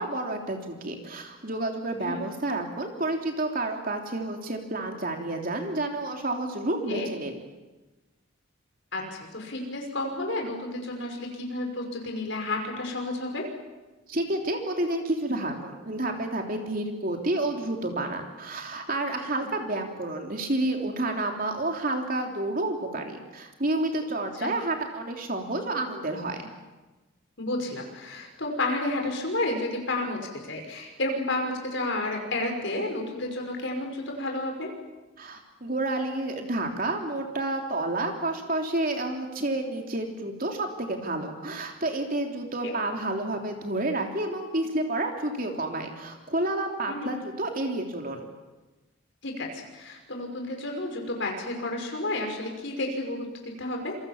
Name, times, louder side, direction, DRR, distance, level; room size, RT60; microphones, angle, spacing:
voice 1, 0.0-7.4 14.1-26.5 35.2-48.3, right 2 dB, 45° right, 3 dB, 3.4 m, -30 dB
voice 2, 8.9-13.4 24.4-24.5 27.4-34.7 42.6-42.7 46.9-47.1 49.2-54.0, left 2 dB, 60° left, 2 dB, 5.7 m, -31 dB
28.0 x 23.0 x 7.4 m, 1.2 s
head